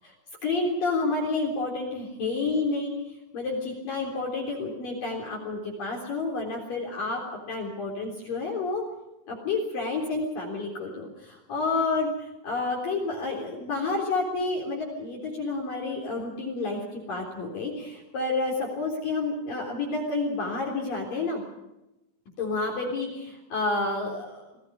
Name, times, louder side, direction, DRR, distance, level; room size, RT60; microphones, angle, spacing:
voice 1, 0.4-2.9 3.3-8.8 9.3-21.4 22.4-24.5, left 3 dB, 45° left, -2 dB, 4.9 m, -30 dB
29.0 x 18.5 x 5.3 m, 0.93 s
omnidirectional pair, 5.6 m